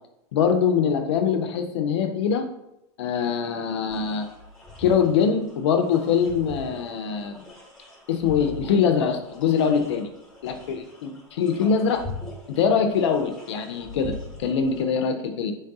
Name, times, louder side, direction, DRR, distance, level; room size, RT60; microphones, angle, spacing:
voice 1, 0.3-2.5 3.0-4.2 4.8-7.4 8.1-10.1 10.4-12.0 12.6-14.1 14.4-15.5, left 6 dB, 80° left, 7 dB, 0.4 m, -23 dB
sound 1, 3.9-14.8, left 2 dB, 5° left, 0.8 m, -42 dB
3.3 x 2.3 x 2.6 m, 0.86 s
hypercardioid pair, 110°, 14 cm